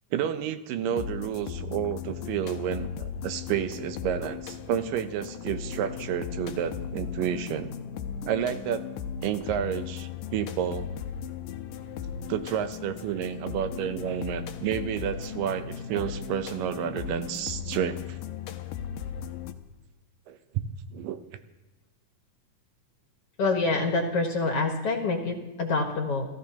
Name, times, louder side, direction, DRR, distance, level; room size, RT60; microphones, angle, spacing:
voice 1, 0.1-7.7 8.3-8.9 9.2-10.9 12.3-18.2 20.3-20.6 20.9-21.2, right 9 dB, 90° right, 9 dB, 2.5 m, -30 dB
sound 1, 0.9-19.5, left 8 dB, 80° left, 2.4 m, -37 dB
voice 2, 23.4-26.2, left 3 dB, 55° left, 2 dB, 2.1 m, -26 dB
29.5 x 14.5 x 2.9 m, 1.0 s
omnidirectional pair, 3.8 m